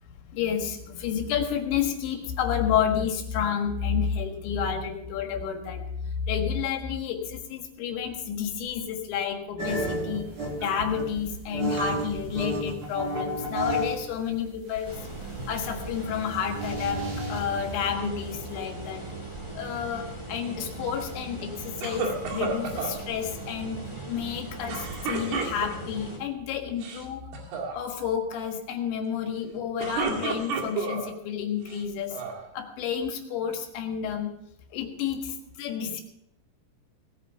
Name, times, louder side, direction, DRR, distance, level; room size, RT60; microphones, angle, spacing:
voice 1, 0.3-5.8 6.3-10.3 10.6-15.0 15.5-19.0 19.6-27.3 27.7-32.2 32.5-34.3 34.7-36.0, left 8 dB, 75° left, 4 dB, 3.8 m, -30 dB
sound 1, 9.6-14.0 14.3-17.7, right 1 dB, 35° right, 2.7 m, -31 dB
sound 2, 14.8-26.2, right 2 dB, 10° right, 2.3 m, -39 dB
sound 3, 21.8-23.0 24.7-26.0 26.7-27.1 27.3-27.7 29.6-31.1 31.7-32.4, right 4 dB, 65° right, 3.9 m, -31 dB
18.0 x 9.3 x 5.7 m, 0.79 s
omnidirectional pair, 5.3 m